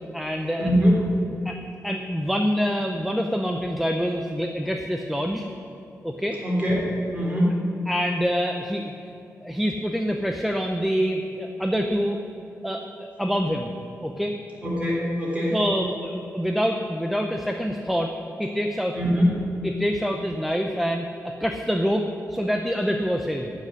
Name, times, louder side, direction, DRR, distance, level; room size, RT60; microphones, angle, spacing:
voice 1, 0.1-0.7 1.4-1.6 1.8-5.5 6.0-6.4 7.9-8.9 9.4-12.2 12.6-12.9 13.2-13.7 14.0-14.4 15.5-18.1 18.4-19.0 19.6-23.5, equal, ahead, 3 dB, 0.6 m, -26 dB
voice 2, 0.7-1.2 6.4-7.6 14.6-15.6 18.9-19.5, equal, 25° right, -4 dB, 3.6 m, -22 dB
14.5 x 6.7 x 9.7 m, 2.7 s
wide cardioid pair, 180°, 6 cm